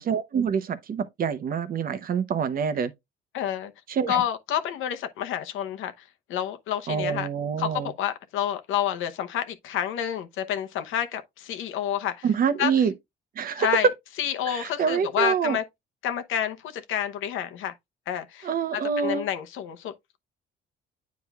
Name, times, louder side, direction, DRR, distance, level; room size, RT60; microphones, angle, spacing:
voice 1, 0.0-2.9 3.9-4.2 6.9-7.9 12.2-12.9 13.4-13.7 14.4-15.6 18.4-19.3, right 6 dB, 45° right, 0.8 m, -26 dB
voice 2, 3.3-3.7 4.1-5.9 6.3-7.3 7.6-12.2 12.6-12.7 13.6-13.9 14.2-15.6 16.0-17.7 18.1-20.2, left 10 dB, 80° left, 0.9 m, -29 dB
9.3 x 4.7 x 2.4 m
cardioid pair, 130°, 20 cm